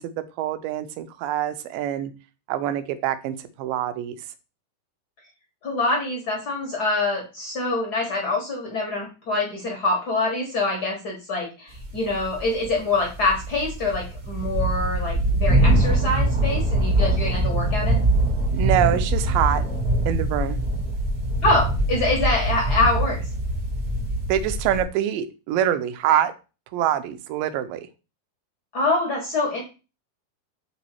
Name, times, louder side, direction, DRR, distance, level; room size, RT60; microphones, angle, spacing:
voice 1, 0.0-2.1 2.5-4.2 18.5-19.6 20.1-20.6 24.3-26.3 26.7-27.9, right 11 dB, 85° right, 10 dB, 2.3 m, -25 dB
voice 2, 5.6-18.0 21.4-23.3 28.7-29.6, left 2 dB, 60° left, 0 dB, 1.0 m, -25 dB
sound 1, 11.7-24.8, right 1 dB, 50° right, 1.0 m, -23 dB
5.4 x 4.1 x 4.4 m, 0.31 s
omnidirectional pair, 4.0 m